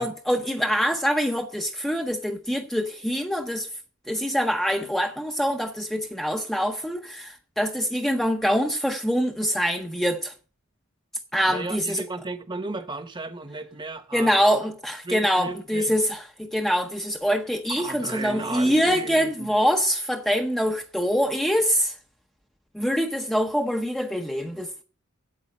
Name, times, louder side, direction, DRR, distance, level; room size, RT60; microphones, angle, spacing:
voice 1, 0.0-3.7 4.1-10.3 11.3-12.0 14.1-21.9 22.7-24.8, equal, ahead, 0.7 m, -24 dB
voice 2, 11.5-14.5 15.0-15.9 17.7-19.5, right 2 dB, 25° right, 1.0 m, -34 dB
8.6 x 7.9 x 6.3 m
head